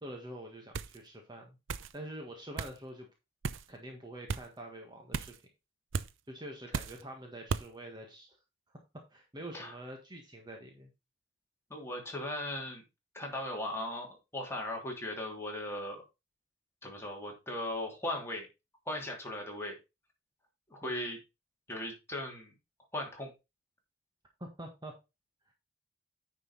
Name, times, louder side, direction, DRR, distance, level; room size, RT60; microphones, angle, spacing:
voice 1, 0.0-1.6 1.9-3.1 3.7-5.3 6.3-8.4 8.7-8.8 9.1-10.9 20.8-21.1 24.4-24.9, right 1 dB, 20° right, 2 dB, 1.6 m, -46 dB
sound 1, 0.7-1.0 1.7-1.9 2.6-2.8 3.4-3.7 4.3-4.5 5.1-5.4 5.9-6.1 6.7-7.0 7.5-7.7, right 5 dB, 80° right, 0.6 m, -35 dB
voice 2, 11.7-12.8 13.1-14.1 14.3-16.0 16.8-18.5 18.9-19.8 20.7-21.2 21.7-22.5 22.9-23.3, left 1 dB, 15° left, 0 dB, 2.9 m, -38 dB
9.6 x 5.5 x 4.0 m, 0.25 s
head